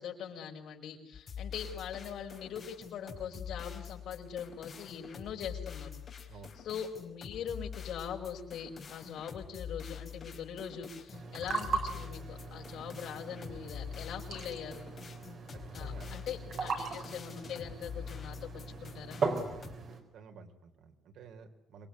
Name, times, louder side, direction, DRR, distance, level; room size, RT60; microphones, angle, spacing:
voice 1, 0.0-5.9 6.6-14.9 15.7-19.2, left 8 dB, 65° left, 2 dB, 5.4 m, -42 dB
sound 1, 1.1-19.7, left 7 dB, 30° left, 4.2 m, -46 dB
sound 2, 11.1-20.0, right 4 dB, 40° right, 4.7 m, -39 dB
voice 2, 15.5-16.2 16.5-16.8 19.5-19.7 20.1-21.9, right 5 dB, 65° right, 6 dB, 3.7 m, -51 dB
26.5 x 22.5 x 9.8 m, 0.79 s
cardioid pair, 180°, 0 cm